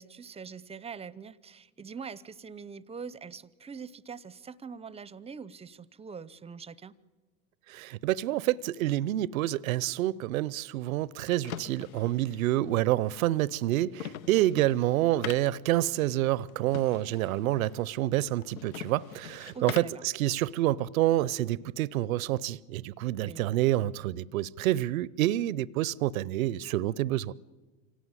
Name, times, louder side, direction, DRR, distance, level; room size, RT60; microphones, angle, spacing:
voice 1, 0.0-6.9 19.5-20.0 23.2-23.4, right 6 dB, 15° right, 0.7 m, -43 dB
voice 2, 7.7-27.3, right 15 dB, 75° right, 0.7 m, -28 dB
sound 1, 10.9-20.1, left 9 dB, 85° left, 0.9 m, -45 dB
25.5 x 17.5 x 9.7 m
hypercardioid pair, 100°, 41 cm